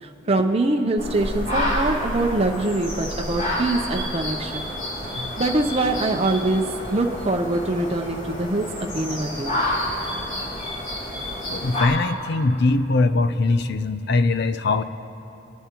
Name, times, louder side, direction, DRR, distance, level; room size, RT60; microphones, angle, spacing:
voice 1, 0.0-4.6 5.4-9.6, right 2 dB, 35° right, 3 dB, 0.6 m, -24 dB
sound 1, 1.0-11.9, left 1 dB, 45° left, 2.9 m, -29 dB
voice 2, 11.5-14.8, left 3 dB, 65° left, 12 dB, 0.5 m, -21 dB
24.0 x 10.5 x 2.9 m, 2.9 s
head